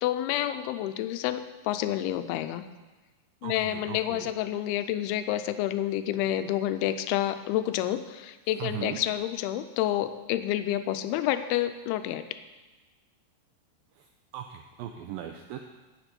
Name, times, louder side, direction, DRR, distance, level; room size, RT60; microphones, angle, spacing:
voice 1, 0.0-2.6 3.4-12.4, left 12 dB, 85° left, 11 dB, 2.4 m, -29 dB
voice 2, 3.4-4.3 8.6-9.0 14.0-14.1 14.3-15.6, right 10 dB, 90° right, 4 dB, 2.0 m, -38 dB
12.5 x 8.1 x 5.2 m, 1.2 s
omnidirectional pair, 4.9 m